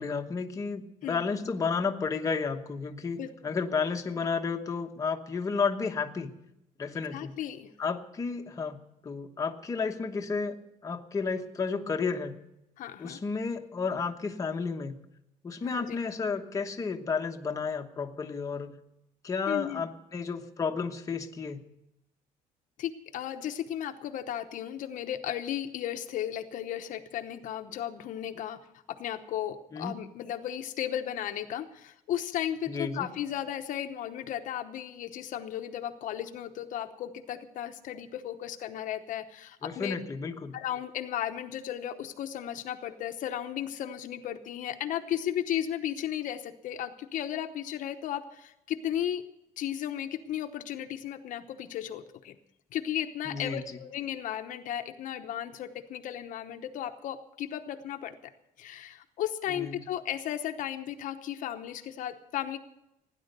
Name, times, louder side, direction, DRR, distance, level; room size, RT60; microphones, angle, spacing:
voice 1, 0.0-6.3 6.8-7.4 7.8-10.6 10.8-12.4 13.0-15.0 15.4-18.8 19.2-21.6 29.7-30.0 32.7-33.1 39.6-40.6 53.3-53.6 59.5-59.8, left 5 dB, 20° left, 3 dB, 1.1 m, -32 dB
voice 2, 3.2-3.5 7.1-7.7 12.8-13.2 15.6-16.0 19.5-19.8 22.8-28.6 28.9-39.9 40.5-49.2 49.6-52.4 52.7-58.3 58.6-62.6, left 11 dB, 60° left, 7 dB, 0.9 m, -35 dB
17.0 x 10.0 x 6.7 m, 0.85 s
cardioid pair, 150°, 15 cm